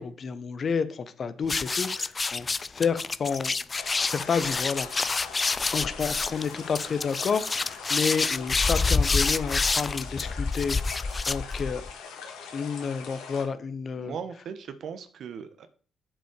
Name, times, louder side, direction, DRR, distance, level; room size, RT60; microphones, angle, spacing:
voice 1, 0.0-4.9 5.7-11.8 12.5-14.1, left 6 dB, 55° left, 13 dB, 1.0 m, -30 dB
sound 1, 1.4-11.9, left 4 dB, 35° left, 0.5 m, -28 dB
sound 2, 3.7-13.4, left 5 dB, 80° left, 2.1 m, -42 dB
voice 2, 14.0-15.7, right 7 dB, 65° right, 11 dB, 1.1 m, -38 dB
7.6 x 5.2 x 6.7 m, 0.43 s
hypercardioid pair, 50°, 0 cm